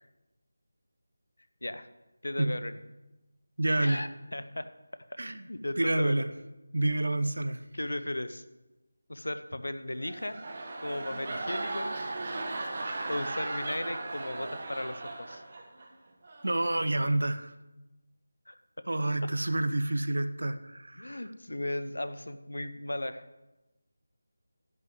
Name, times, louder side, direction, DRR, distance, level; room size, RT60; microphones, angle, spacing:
voice 1, 2.2-2.7 3.8-4.6 5.1-5.2 5.5-6.2 7.4-7.5 7.7-8.4 9.1-10.4 10.8-11.9 13.1-15.4 18.5-18.6 21.0-23.2, left 1 dB, 75° left, 11 dB, 0.8 m, -36 dB
voice 2, 3.6-4.0 5.2-5.4 5.8-6.3 6.7-7.6 16.4-17.5 18.9-21.2, right 1 dB, 70° right, 11 dB, 0.8 m, -28 dB
sound 1, 9.9-15.9 16.2-16.6, right 2 dB, 40° right, 1.5 m, -37 dB
10.5 x 5.9 x 7.7 m, 1.0 s
figure-of-eight pair, 165°, 0 cm